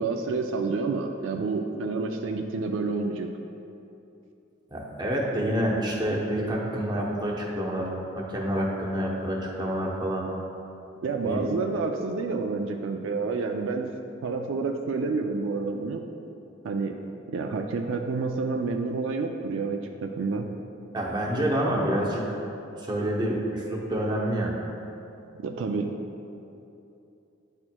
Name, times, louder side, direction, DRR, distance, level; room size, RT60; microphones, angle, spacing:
voice 1, 0.0-3.3 11.0-13.9 14.2-16.1 16.6-17.0 17.3-20.5 25.4-25.9, right 4 dB, 75° right, 4 dB, 0.3 m, -29 dB
voice 2, 4.7-10.3 11.2-11.4 20.9-22.4 22.8-24.5, right 1 dB, 20° right, -3 dB, 0.8 m, -28 dB
9.6 x 4.3 x 2.2 m, 2.8 s
head